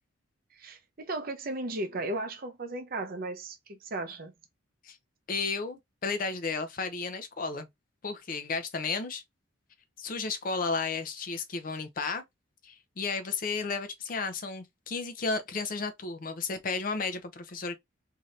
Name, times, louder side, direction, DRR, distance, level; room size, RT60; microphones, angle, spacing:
voice 1, 0.5-4.3, right 2 dB, 45° right, 0.6 m, -35 dB
voice 2, 5.3-7.7 8.0-9.2 10.0-12.2 12.6-17.8, left 4 dB, 40° left, 0.5 m, -33 dB
2.7 x 2.5 x 3.1 m
head